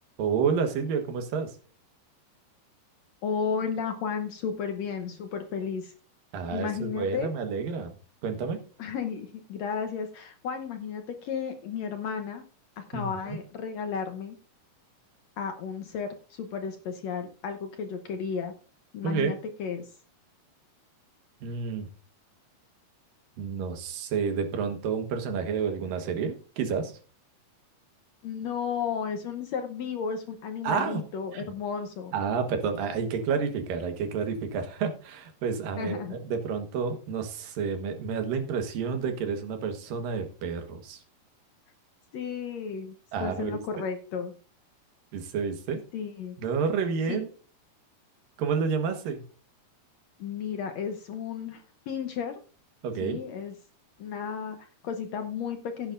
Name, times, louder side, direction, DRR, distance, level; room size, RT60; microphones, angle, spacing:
voice 1, 0.2-1.5 6.3-7.9 8.2-8.6 12.9-13.4 19.0-19.3 21.4-21.9 23.4-27.0 30.6-31.0 31.3-31.5 32.1-41.0 43.1-43.6 45.1-45.8 46.4-47.3 48.4-49.2 52.8-53.2, right 6 dB, 80° right, 6 dB, 3.1 m, -30 dB
voice 2, 3.2-5.9 6.5-7.3 8.8-12.4 12.8-14.4 15.4-18.5 18.9-20.0 28.2-32.1 35.8-36.2 42.1-44.4 45.9-46.4 47.1-47.2 50.2-52.4 53.0-53.5 54.0-55.9, left 6 dB, 70° left, 6 dB, 1.8 m, -33 dB
16.0 x 8.7 x 2.5 m, 0.36 s
omnidirectional pair, 3.9 m